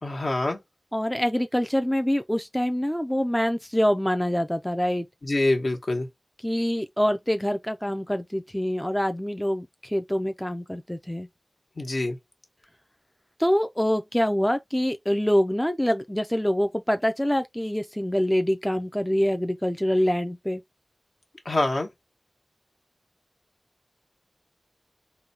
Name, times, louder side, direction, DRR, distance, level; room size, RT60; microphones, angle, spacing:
voice 1, 0.0-0.6 5.2-6.1 11.8-12.2 21.5-21.9, left 2 dB, 65° left, 1.1 m, -25 dB
voice 2, 0.9-5.1 6.4-11.3 13.4-20.6, equal, 10° left, 0.4 m, -25 dB
3.9 x 2.3 x 4.2 m
wide cardioid pair, 70°, 0 cm